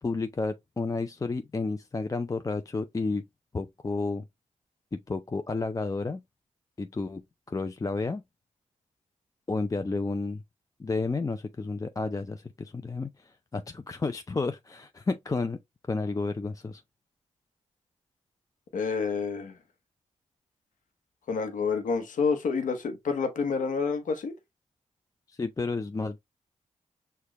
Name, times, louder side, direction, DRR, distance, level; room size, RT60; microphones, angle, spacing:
voice 1, 0.0-3.2 3.5-4.2 4.9-6.2 6.8-7.2 7.5-8.2 9.5-10.4 10.8-15.6 15.9-16.8 25.3-26.2, left 3 dB, 25° left, 0.4 m, -31 dB
voice 2, 18.7-19.6 21.3-24.3, left 5 dB, 85° left, 0.9 m, -28 dB
6.4 x 2.3 x 2.9 m
cardioid pair, 50°, 13 cm